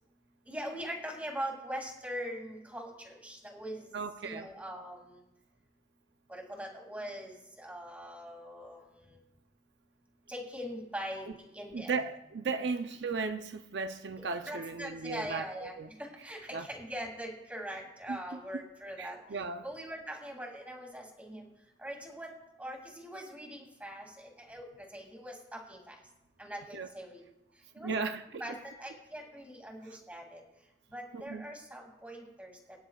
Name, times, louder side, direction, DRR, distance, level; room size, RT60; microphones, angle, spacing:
voice 1, 0.5-3.9 4.2-5.2 6.3-9.2 10.3-11.3 11.5-11.9 14.2-19.2 19.6-21.5 21.8-22.3 22.6-25.9 26.4-27.2 27.7-27.9 28.4-30.4 30.9-32.5, equal, 10° right, 2.5 m, -42 dB
voice 2, 3.9-4.5 11.7-15.9 16.5-16.7 18.1-18.2 19.0-19.6 26.7-26.9 27.8-28.6 31.1-31.5, right 4 dB, 75° right, 0.6 m, -36 dB
22.5 x 10.0 x 2.4 m
head